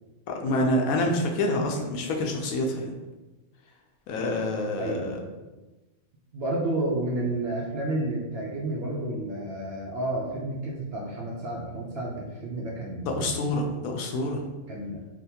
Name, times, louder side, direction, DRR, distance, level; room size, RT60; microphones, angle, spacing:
voice 1, 0.3-2.9 4.1-5.2 13.1-14.4, left 1 dB, 85° left, 2 dB, 1.0 m, -27 dB
voice 2, 4.8-5.2 6.3-13.4 14.7-15.0, right 1 dB, 65° right, -3 dB, 0.6 m, -31 dB
3.9 x 2.1 x 2.7 m, 1.1 s
omnidirectional pair, 1.4 m